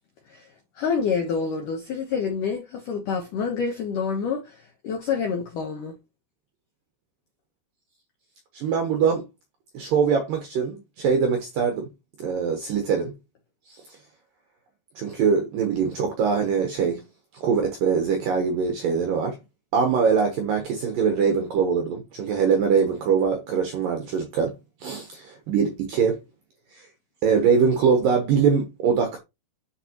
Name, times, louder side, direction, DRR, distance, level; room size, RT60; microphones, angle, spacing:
voice 1, 0.8-6.0, left 6 dB, 75° left, 1.9 m, -27 dB
voice 2, 8.5-9.2 9.7-11.9 12.2-13.1 13.7-14.0 15.0-17.0 17.3-19.4 19.7-24.5 24.8-26.2 26.7-26.9 27.2-29.2, right 6 dB, 70° right, 2.1 m, -23 dB
10.0 x 4.4 x 3.0 m
omnidirectional pair, 5.3 m